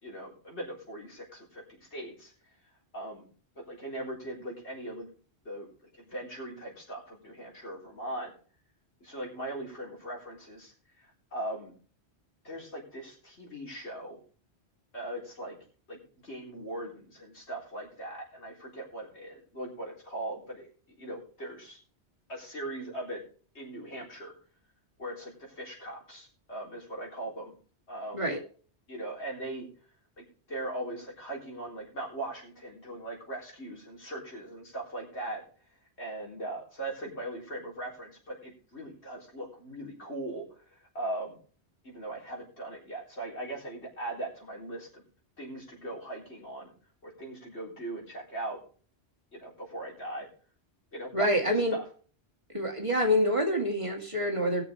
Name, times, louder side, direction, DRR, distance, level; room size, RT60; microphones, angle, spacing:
voice 1, 0.0-2.3 2.9-3.3 3.6-5.1 5.4-5.7 6.0-8.3 9.0-10.7 11.3-11.7 12.4-14.2 14.9-15.6 15.9-20.7 21.0-21.8 22.3-23.2 23.5-24.3 25.0-27.5 27.9-28.2 28.9-29.7 30.2-35.4 36.0-40.4 40.7-41.4 41.8-45.0 45.4-46.7 47.0-48.6 49.3-50.3 50.9-51.3 51.7-51.8, right 1 dB, 85° left, -3 dB, 4.1 m, -39 dB
voice 2, 51.1-51.8 52.5-54.6, equal, 30° right, 0 dB, 2.2 m, -26 dB
20.0 x 6.7 x 3.3 m, 0.42 s
omnidirectional pair, 1.1 m